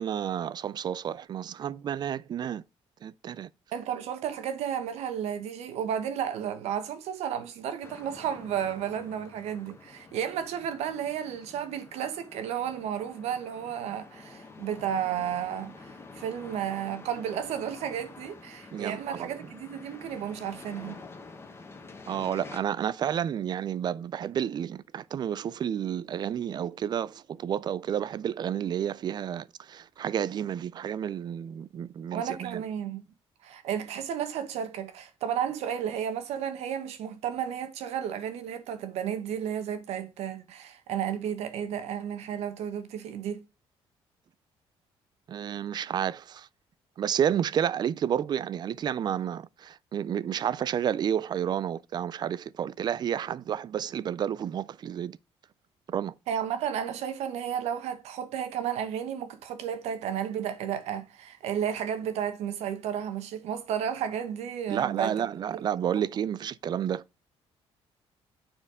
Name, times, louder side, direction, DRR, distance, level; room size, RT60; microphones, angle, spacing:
voice 1, 0.0-2.6 3.0-3.5 18.7-19.3 22.1-32.6 45.3-46.5 47.0-55.2 55.9-56.1 64.7-67.0, right 9 dB, 40° right, 0.3 m, -30 dB
voice 2, 3.7-21.0 32.1-33.1 33.4-43.4 56.3-65.1, right 9 dB, 85° right, 1.1 m, -33 dB
sound 1, 7.8-22.6, left 3 dB, 25° left, 1.2 m, -48 dB
7.3 x 4.4 x 4.9 m
cardioid pair, 130°, 11 cm